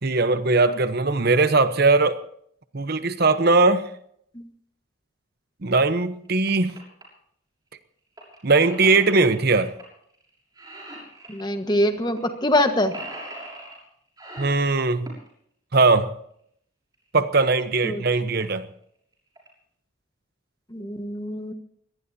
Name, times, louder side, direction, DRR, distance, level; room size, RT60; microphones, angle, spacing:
voice 1, 0.0-2.2 2.7-3.9 5.6-6.8 8.4-9.7 14.4-15.1 15.7-16.1 17.1-18.7, right 3 dB, 50° right, 11 dB, 0.9 m, -20 dB
sound 1, 5.8-5.9 6.2-7.0 8.2-9.8 10.1-10.3 10.5-11.5 12.2-12.3 12.5-13.8 14.2-15.3 16.9-17.0 17.6-17.7 17.9-18.0 18.3-18.6 19.1-19.5, right 1 dB, 20° right, 6.7 m, -40 dB
voice 2, 11.3-12.9 17.8-18.0 20.7-21.5, left 1 dB, 20° left, 7 dB, 1.4 m, -24 dB
24.0 x 18.5 x 2.8 m, 0.68 s
head